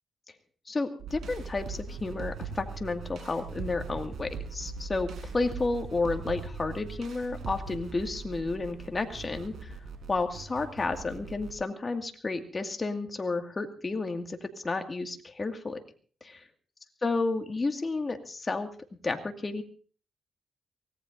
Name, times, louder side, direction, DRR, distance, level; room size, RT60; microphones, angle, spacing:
voice 1, 0.7-9.7 10.1-15.8 16.2-16.4 17.0-18.7 19.0-19.6, left 3 dB, 35° left, 5 dB, 2.1 m, -31 dB
sound 1, 1.0-11.5, right 4 dB, 75° right, 4.2 m, -40 dB
23.5 x 18.5 x 2.7 m, 0.41 s
cardioid pair, 75°, 0 cm